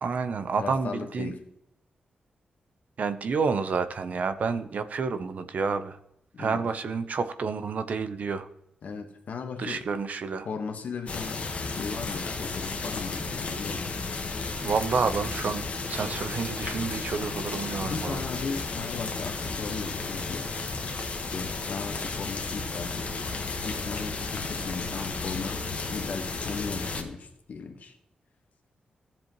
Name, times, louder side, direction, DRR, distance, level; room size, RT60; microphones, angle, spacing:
voice 1, 0.0-1.3 3.0-6.0 6.4-8.5 9.6-10.5 14.6-18.2, right 5 dB, 65° right, 11 dB, 0.7 m, -29 dB
voice 2, 0.6-1.4 6.3-6.6 8.8-9.9 10.4-13.9 17.8-20.5 21.2-23.1 23.6-27.9, left 5 dB, 70° left, 6 dB, 1.3 m, -37 dB
sound 1, 11.1-27.0, left 3 dB, 55° left, 1.3 m, -33 dB
14.5 x 7.4 x 3.0 m, 0.82 s
cardioid pair, 65°, 3 cm